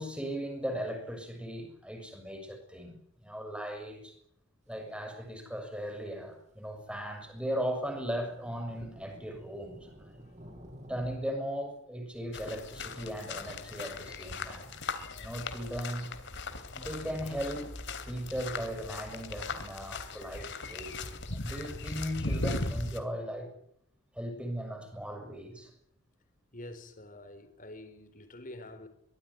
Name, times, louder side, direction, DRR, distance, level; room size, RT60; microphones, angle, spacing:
voice 1, 0.0-4.1 4.7-10.2 10.9-14.8 15.2-16.1 16.7-17.7 18.0-21.0 21.3-23.5 24.1-25.7, equal, 5° right, 6.3 m, -37 dB
sound 1, 4.7-4.8 5.3-5.4 5.9-6.0 6.7-11.2, equal, 30° right, 7.8 m, -52 dB
sound 2, 12.3-23.0, left 3 dB, 55° left, 3.1 m, -38 dB
voice 2, 26.5-28.9, left 1 dB, 40° left, 4.2 m, -47 dB
24.0 x 18.0 x 9.9 m
head